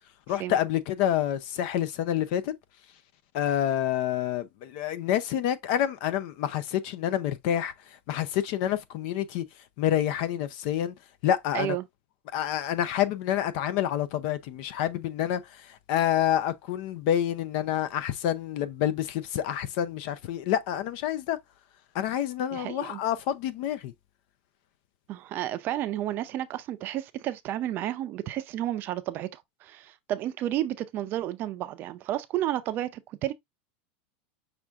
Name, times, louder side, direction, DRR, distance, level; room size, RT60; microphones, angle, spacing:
voice 1, 0.3-2.5 3.3-7.7 8.1-9.4 9.8-10.9 11.2-11.8 12.3-15.4 15.7-21.4 21.9-23.9, left 11 dB, 55° left, 0.7 m, -28 dB
voice 2, 11.5-11.9 22.5-23.0 25.1-33.3, right 13 dB, 35° right, 0.5 m, -31 dB
6.0 x 2.5 x 3.5 m
supercardioid pair, 145°, 6 cm